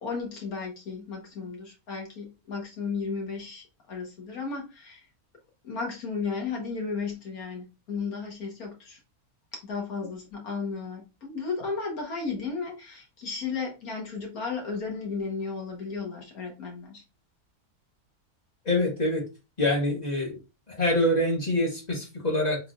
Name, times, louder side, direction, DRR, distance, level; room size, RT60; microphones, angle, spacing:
voice 1, 0.0-5.0 5.6-9.0 9.5-17.0, left 4 dB, 70° left, 1.9 m, -34 dB
voice 2, 18.6-19.2 19.6-20.4 20.7-22.6, left 1 dB, 30° left, 1.5 m, -25 dB
3.8 x 3.7 x 2.5 m
omnidirectional pair, 1.6 m